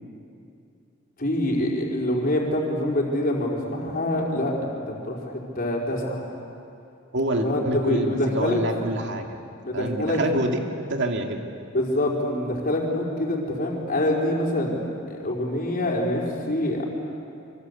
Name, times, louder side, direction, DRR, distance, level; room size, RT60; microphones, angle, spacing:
voice 1, 1.2-6.3 7.3-8.6 9.6-10.2 11.7-16.9, left 1 dB, 45° left, -2 dB, 4.9 m, -25 dB
voice 2, 7.1-9.4 9.7-10.6 10.9-11.4, right 1 dB, 60° right, 3 dB, 2.4 m, -27 dB
26.0 x 25.0 x 8.5 m, 2.6 s
head